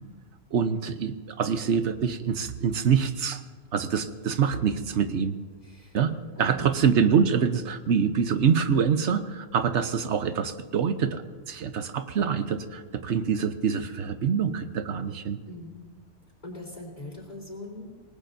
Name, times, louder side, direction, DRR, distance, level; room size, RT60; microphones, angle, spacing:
voice 1, 0.5-3.4 3.7-5.3 5.9-11.2 11.5-15.4, right 7 dB, 70° right, 9 dB, 1.1 m, -25 dB
voice 2, 5.6-6.0 6.4-6.9 15.5-15.8 16.4-17.9, left 2 dB, 35° left, -2 dB, 3.9 m, -41 dB
26.5 x 19.5 x 2.7 m, 1.4 s
omnidirectional pair, 1.2 m